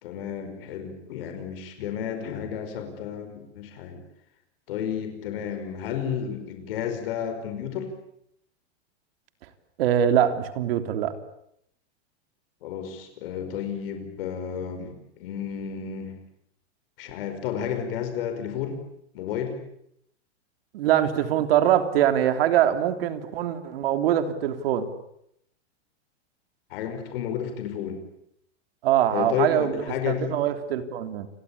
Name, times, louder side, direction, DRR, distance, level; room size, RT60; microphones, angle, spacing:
voice 1, 0.0-4.0 4.7-7.9 12.6-16.2 17.0-18.8 19.1-19.6 26.7-28.0 29.1-30.4, left 8 dB, 55° left, 6 dB, 5.2 m, -32 dB
voice 2, 9.8-11.1 20.7-24.9 28.8-29.7 30.1-31.3, right 10 dB, 60° right, 9 dB, 3.3 m, -23 dB
29.0 x 23.0 x 8.6 m, 0.75 s
supercardioid pair, 160°, 34 cm